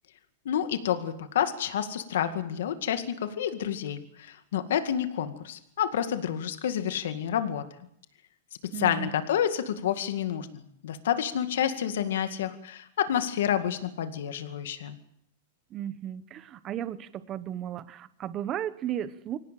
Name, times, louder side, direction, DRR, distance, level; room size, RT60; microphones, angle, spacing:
voice 1, 0.5-7.6 8.7-15.0, left 9 dB, 70° left, 9 dB, 2.1 m, -29 dB
voice 2, 8.7-9.1 15.7-19.4, right 11 dB, 20° right, 15 dB, 1.0 m, -34 dB
25.0 x 18.0 x 7.6 m, 0.72 s
supercardioid pair, 170°, 0 cm